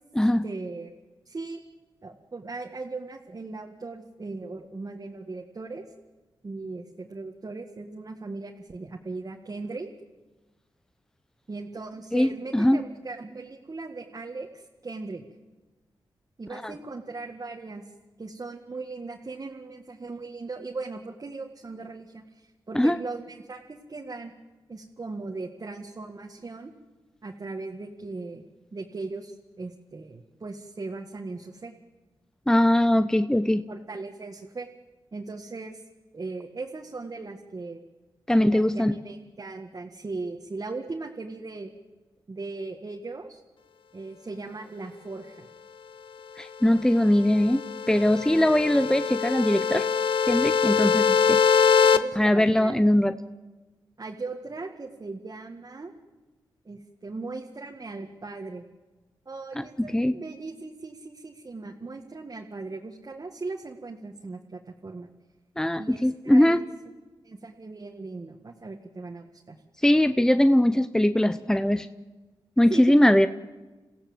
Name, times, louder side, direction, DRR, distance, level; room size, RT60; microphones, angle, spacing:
voice 1, 0.4-0.9 1.3-1.6 2.0-5.9 6.4-9.9 11.5-15.2 16.4-17.8 18.2-23.6 23.9-24.3 24.7-26.7 27.2-28.4 28.7-31.7 33.7-34.7 35.1-35.8 36.1-37.8 38.3-41.7 42.3-43.4 43.9-45.5 50.8-51.2 51.9-52.8 54.0-55.9 56.7-58.6 59.3-65.1 65.8-66.6 67.2-69.6 72.7-73.3, right 3 dB, 45° right, 1 dB, 1.9 m, -38 dB
voice 2, 12.1-12.8 16.5-16.7 22.7-23.0 32.5-33.6 38.3-38.9 46.4-47.6 47.9-49.9 50.3-51.4 52.2-53.1 59.6-60.2 65.6-66.6 69.8-71.9 72.6-73.3, left 1 dB, 5° left, 11 dB, 0.8 m, -21 dB
sound 1, 47.0-52.0, left 6 dB, 70° left, 1.0 m, -23 dB
28.0 x 16.0 x 7.9 m, 1.2 s
cardioid pair, 60°, 9 cm